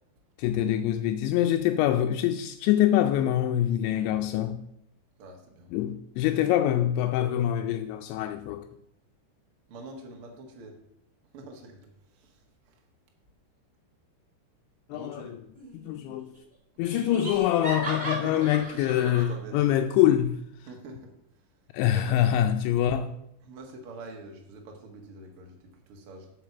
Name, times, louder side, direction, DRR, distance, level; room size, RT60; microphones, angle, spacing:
voice 1, 0.4-4.7 5.7-8.7 14.9-15.3 15.7-16.3 16.8-20.4 21.7-23.1, left 11 dB, 85° left, 2.8 m, -25 dB
voice 2, 5.2-5.7 9.7-10.8 11.3-12.8 14.9-15.4 16.7-17.2 18.2-19.6 20.6-21.6 21.9-22.4 23.4-26.3, right 2 dB, 80° right, 1.2 m, -45 dB
Laughter, 15.5-16.1 16.4-16.5 16.9-19.3, right 2 dB, 10° right, 3.4 m, -36 dB
7.9 x 6.6 x 6.9 m
omnidirectional pair, 5.3 m